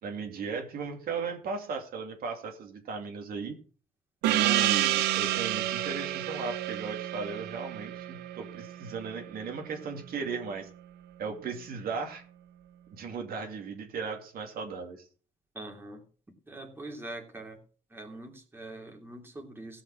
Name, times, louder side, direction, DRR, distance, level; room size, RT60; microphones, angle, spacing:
voice 1, 0.0-3.6 4.2-10.7 11.2-12.2 12.9-15.1, right 5 dB, 60° right, 3 dB, 2.5 m, -36 dB
Gong, 4.2-9.3, right 13 dB, 85° right, 0.9 m, -29 dB
voice 2, 15.5-16.0 16.5-17.6 17.9-19.8, right 2 dB, 15° right, 1 dB, 3.0 m, -43 dB
16.5 x 5.7 x 6.1 m, 0.41 s
cardioid pair, 110°, 17 cm